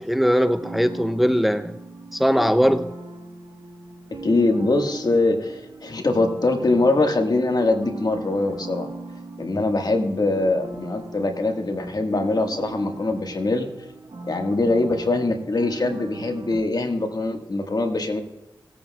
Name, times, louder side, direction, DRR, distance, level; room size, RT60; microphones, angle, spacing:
voice 1, 0.0-1.8 2.1-2.9, equal, ahead, 0.6 m, -20 dB
sound 1, 0.6-16.6, right 2 dB, 60° right, 2.0 m, -39 dB
voice 2, 4.1-8.9 9.4-13.7 14.3-18.2, left 2 dB, 55° left, 1.8 m, -23 dB
19.0 x 8.7 x 2.4 m
cardioid pair, 40°, 8 cm